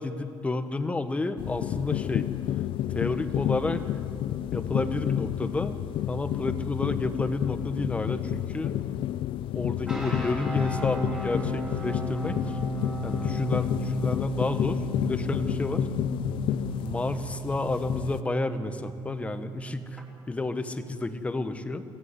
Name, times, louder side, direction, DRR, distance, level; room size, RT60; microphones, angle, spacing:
voice 1, 0.0-2.3 2.9-3.8 4.5-5.8 6.1-8.7 9.5-12.6 13.0-15.9 16.8-21.8, left 2 dB, 15° left, 9 dB, 1.2 m, -30 dB
sound 1, 1.4-18.2, left 12 dB, 60° left, 0.6 m, -30 dB
sound 2, 9.9-20.0, right 3 dB, 5° right, 3.9 m, -36 dB
24.0 x 16.5 x 9.7 m, 2.5 s
cardioid pair, 150°, 10 cm